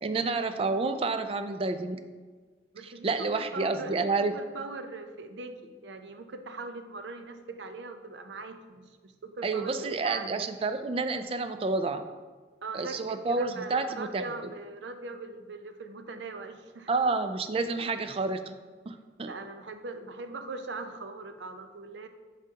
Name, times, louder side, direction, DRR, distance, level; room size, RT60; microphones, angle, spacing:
voice 1, 0.0-2.0 3.0-4.3 9.4-12.0 12.7-14.2 16.9-18.6 18.9-19.3, right 3 dB, 35° right, 9 dB, 0.3 m, -29 dB
voice 2, 2.7-10.5 12.6-16.9 19.2-22.1, right 3 dB, 85° right, 8 dB, 0.5 m, -41 dB
8.5 x 4.9 x 2.8 m, 1.4 s
head